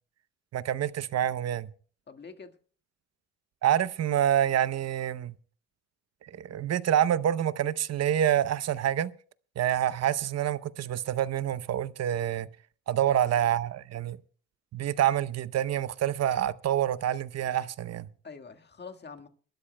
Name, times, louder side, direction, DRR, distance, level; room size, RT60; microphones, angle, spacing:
voice 1, 0.5-1.7 3.6-5.3 6.4-9.1 9.6-12.5 12.9-14.2 14.7-18.1, right 11 dB, 55° right, 0.7 m, -27 dB
voice 2, 2.1-2.6 13.1-13.5 18.2-19.3, left 5 dB, 35° left, 1.7 m, -45 dB
28.0 x 12.5 x 2.2 m
cardioid pair, 90°, 30 cm